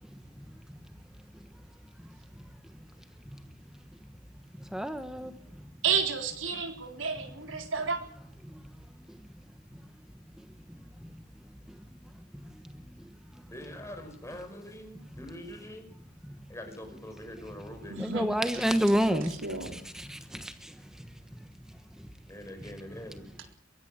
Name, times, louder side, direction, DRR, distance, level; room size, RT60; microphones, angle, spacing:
voice 1, 4.7-5.3 18.0-19.3 19.7-20.2, equal, 5° right, 1.3 m, -27 dB
voice 2, 5.8-8.0 17.9-18.6 19.1-19.8, right 5 dB, 75° right, 3.8 m, -31 dB
voice 3, 13.5-15.9 16.5-18.1 22.3-23.3, left 1 dB, 15° left, 5.5 m, -44 dB
23.5 x 17.0 x 9.0 m
head